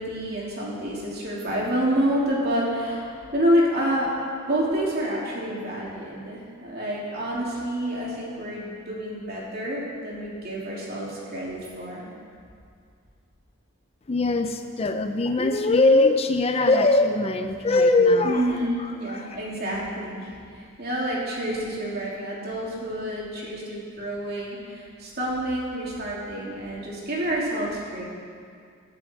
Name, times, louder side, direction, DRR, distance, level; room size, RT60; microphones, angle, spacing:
voice 1, 0.0-4.1 4.5-12.1 18.2-28.0, equal, 50° right, -5 dB, 3.3 m, -28 dB
voice 2, 14.1-19.4, left 2 dB, 30° left, 7 dB, 0.5 m, -21 dB
21.5 x 7.6 x 4.7 m, 2.3 s
head